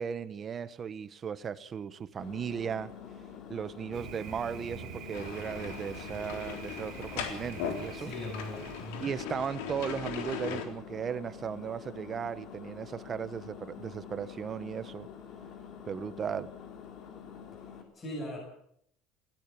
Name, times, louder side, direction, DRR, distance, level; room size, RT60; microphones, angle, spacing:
voice 1, 0.0-2.9 3.5-8.1 9.0-15.1 15.9-16.5, right 7 dB, 25° right, 15 dB, 1.0 m, -36 dB
Engine, 2.2-17.8, left 7 dB, 45° left, 3.6 m, -47 dB
Thunder, 3.9-9.2, right 9 dB, 45° right, 2.0 m, -46 dB
sound 1, 5.1-10.6, left 8 dB, 90° left, 3.7 m, -39 dB
voice 2, 8.0-9.1 17.9-18.4, left 1 dB, 25° left, -1 dB, 7.8 m, -39 dB
19.5 x 16.5 x 8.5 m, 0.71 s
cardioid pair, 155°, 0 cm